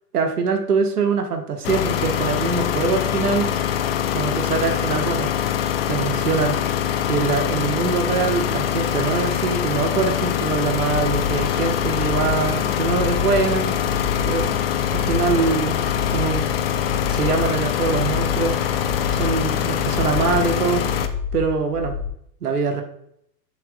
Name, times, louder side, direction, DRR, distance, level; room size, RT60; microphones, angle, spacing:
voice 1, 0.1-3.5 4.1-5.3 5.9-6.6 7.1-13.8 14.2-14.6 14.9-15.8 16.1-16.6 17.1-18.6 19.1-20.8 21.3-21.9 22.4-22.8, right 5 dB, 65° right, 5 dB, 1.3 m, -23 dB
sound 1, 1.6-21.1, left 10 dB, 40° left, 0.5 m, -23 dB
sound 2, 10.7-22.1, left 5 dB, 40° right, 2.8 m, -30 dB
8.7 x 6.1 x 2.3 m, 0.72 s
figure-of-eight pair, 105°, 50 cm